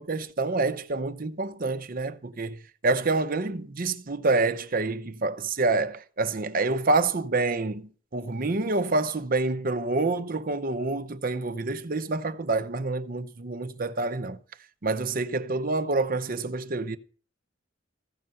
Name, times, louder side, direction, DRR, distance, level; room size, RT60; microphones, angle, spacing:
voice 1, 0.0-14.4 14.8-17.0, right 3 dB, 45° right, 0.8 m, -27 dB
15.0 x 5.6 x 7.7 m
head